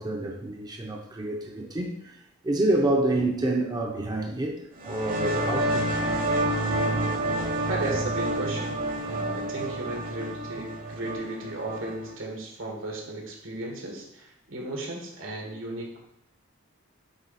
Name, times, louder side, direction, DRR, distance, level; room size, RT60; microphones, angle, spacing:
voice 1, 0.0-5.9 7.4-7.5 12.3-12.4, right 1 dB, 20° right, 0.7 m, -28 dB
sound 1, 4.8-12.1, right 1 dB, 45° right, 1.1 m, -29 dB
voice 2, 7.7-16.1, right 2 dB, 80° right, 1.8 m, -35 dB
8.8 x 3.7 x 4.2 m
head